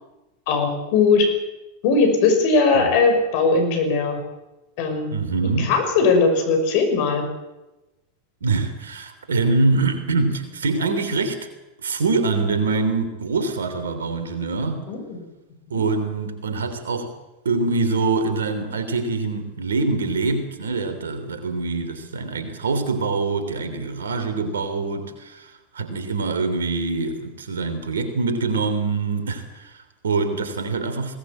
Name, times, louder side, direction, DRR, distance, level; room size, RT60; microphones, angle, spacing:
voice 1, 0.5-1.3 1.8-4.2 4.8-5.1 5.6-7.3 14.9-15.2, left 4 dB, 55° left, 6 dB, 6.0 m, -19 dB
voice 2, 5.1-5.7 8.4-11.4 11.8-14.8 15.7-17.1 17.4-31.2, right 3 dB, 80° right, 9 dB, 3.2 m, -24 dB
20.5 x 18.5 x 7.8 m, 1.0 s
hypercardioid pair, 90°, 0 cm